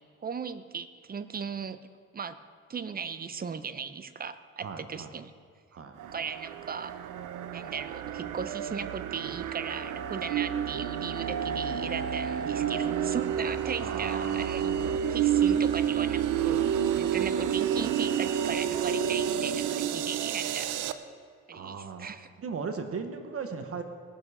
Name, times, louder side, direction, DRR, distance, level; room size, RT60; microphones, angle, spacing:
voice 1, 0.2-1.8 2.1-2.4 2.7-5.3 6.1-7.0 7.5-14.6 15.1-16.6 17.0-20.8 21.5-22.3, right 6 dB, 30° right, 13 dB, 0.7 m, -37 dB
voice 2, 4.6-5.1 5.7-6.0 13.8-14.9 21.5-22.1 22.4-23.8, right 5 dB, 50° right, 7 dB, 1.1 m, -37 dB
sound 1, 6.0-20.9, right 9 dB, 85° right, 0.6 m, -29 dB
18.5 x 7.2 x 4.9 m, 2.1 s
cardioid pair, 90°, 30 cm